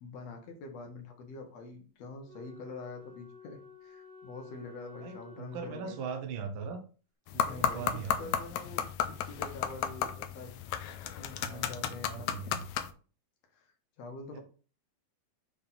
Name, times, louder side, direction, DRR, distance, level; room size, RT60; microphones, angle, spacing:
voice 1, 0.0-6.0 7.4-10.5 11.2-12.4 13.5-13.7 14.0-14.4, left 3 dB, 65° left, 3 dB, 2.4 m, -45 dB
Wind instrument woodwind instrument, 2.2-6.7, left 5 dB, 40° right, 1.4 m, -52 dB
voice 2, 5.0-6.8 7.3-8.3 11.3-12.6 14.3-14.4, right 6 dB, 60° right, 5 dB, 1.3 m, -40 dB
sound 1, 7.3-12.9, left 9 dB, 85° left, 2.0 m, -34 dB
7.4 x 3.4 x 4.1 m, 0.38 s
omnidirectional pair, 3.3 m